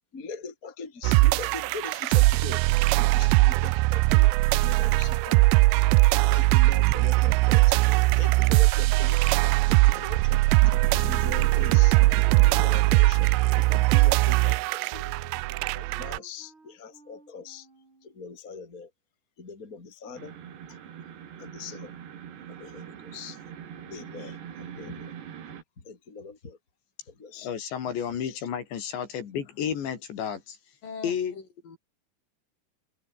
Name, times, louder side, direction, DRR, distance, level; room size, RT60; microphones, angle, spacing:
voice 1, 0.1-2.6 3.0-5.6 6.1-9.4 9.7-15.1 15.6-17.7 18.0-18.9 19.4-20.4 20.7-20.8 21.4-22.0 22.5-23.4 23.9-25.1 25.8-26.6 27.1-27.5 28.2-28.4, left 4 dB, 20° left, 3.3 m, -41 dB
sound 1, 1.0-16.2, right 22 dB, 85° right, 2.9 m, -21 dB
Wind instrument woodwind instrument, 11.7-18.3, right 3 dB, 30° right, 6.5 m, -52 dB
sound 2, 20.1-25.6, right 9 dB, 70° right, 5.0 m, -43 dB
voice 2, 27.4-30.6 31.0-31.4, left 8 dB, 80° left, 5.5 m, -31 dB
voice 3, 30.8-31.8, left 5 dB, 50° left, 7.1 m, -42 dB
omnidirectional pair, 5.1 m